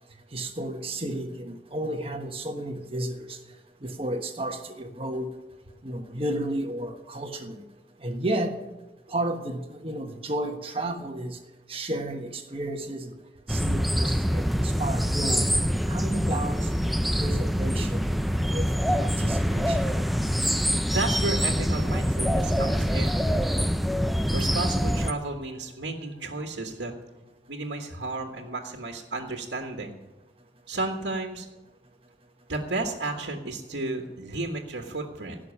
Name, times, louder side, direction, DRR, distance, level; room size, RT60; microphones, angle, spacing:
voice 1, 0.3-3.4 3.8-5.3 5.8-7.6 8.0-8.6 9.1-11.4 11.7-13.1 13.5-15.4 15.9-16.7 17.2-18.1 18.5-18.6 19.0-19.8, right 1 dB, 35° right, 4 dB, 1.3 m, -32 dB
sound 1, 13.5-25.1, equal, ahead, 0.5 m, -25 dB
voice 2, 20.8-23.2 24.3-26.9 27.5-30.0 30.7-31.5 32.5-35.4, right 2 dB, 85° right, 2 dB, 1.6 m, -32 dB
17.0 x 6.4 x 9.7 m, 1.1 s
head